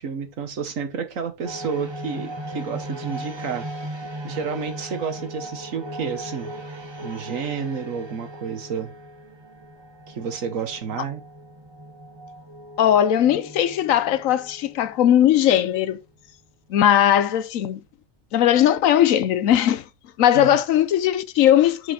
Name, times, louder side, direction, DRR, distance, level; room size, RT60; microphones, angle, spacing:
voice 1, 0.0-3.7 4.2-6.5 7.0-8.9 10.1-11.2 20.3-20.5, right 6 dB, 70° right, 1.6 m, -30 dB
sound 1, 1.4-15.8, right 1 dB, 20° right, 1.1 m, -38 dB
voice 2, 12.8-16.0 16.7-17.8 18.3-19.8 20.2-21.9, left 11 dB, 75° left, 1.0 m, -18 dB
6.8 x 5.2 x 4.1 m
omnidirectional pair, 1.4 m